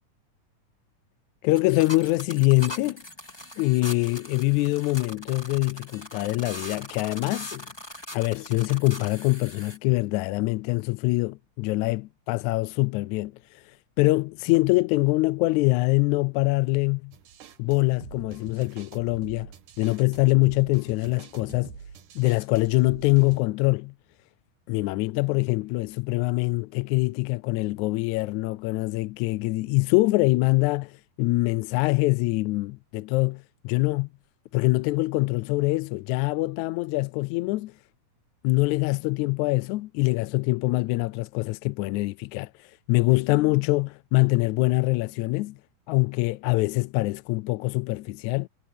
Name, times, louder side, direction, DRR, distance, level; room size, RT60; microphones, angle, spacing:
voice 1, 1.4-3.0 3.6-7.7 8.1-13.3 14.0-17.1 17.6-19.5 19.8-21.7 22.1-23.9 24.7-34.1 34.5-37.7 38.4-42.5 42.9-45.5 45.9-48.5, left 22 dB, 80° left, 1.8 m, -24 dB
sound 1, 1.5-9.8, left 1 dB, 5° left, 3.6 m, -41 dB
sound 2, 17.1-23.4, right 7 dB, 80° right, 3.1 m, -45 dB
omnidirectional pair, 3.7 m